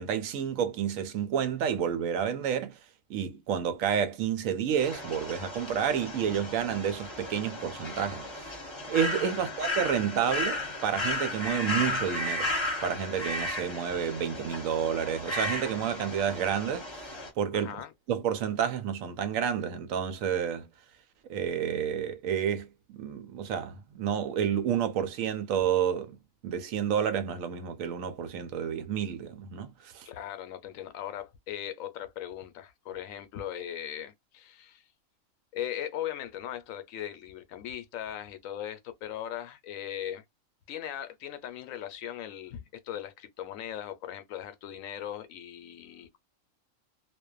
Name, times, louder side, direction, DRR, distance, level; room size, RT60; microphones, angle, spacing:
voice 1, 0.0-2.8 3.1-8.6 8.9-12.5 12.8-17.8 18.1-20.7 21.3-26.2 26.4-30.1, right 8 dB, 80° right, 1.0 m, -30 dB
sound 1, 4.8-17.3, left 1 dB, 25° left, 0.8 m, -34 dB
voice 2, 17.5-17.9 30.1-34.8 35.5-40.2 40.7-46.2, left 10 dB, 80° left, 1.0 m, -39 dB
2.5 x 2.2 x 2.3 m
omnidirectional pair, 1.4 m